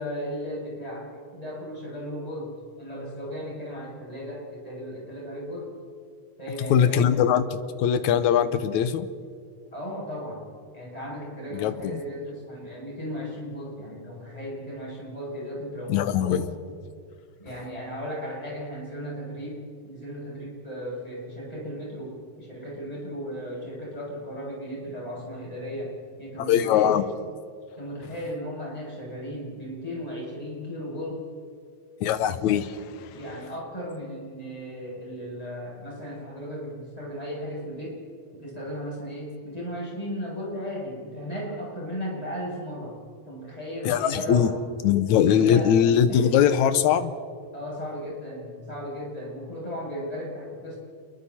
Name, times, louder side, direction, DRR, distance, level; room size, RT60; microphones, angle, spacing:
voice 1, 0.0-5.7 6.4-7.2 9.7-10.5 10.7-16.5 17.4-27.0 27.8-31.2 33.1-38.0 38.3-43.0 43.2-44.5 45.2-45.7 46.1-46.3 47.5-50.8, equal, 10° left, -5 dB, 7.3 m, -36 dB
voice 2, 6.7-9.1 11.5-12.0 15.9-16.5 26.4-27.0 32.0-33.2 43.8-44.5 44.8-47.1, left 9 dB, 70° left, 12 dB, 2.1 m, -21 dB
28.5 x 22.5 x 4.3 m, 2.2 s
omnidirectional pair, 3.8 m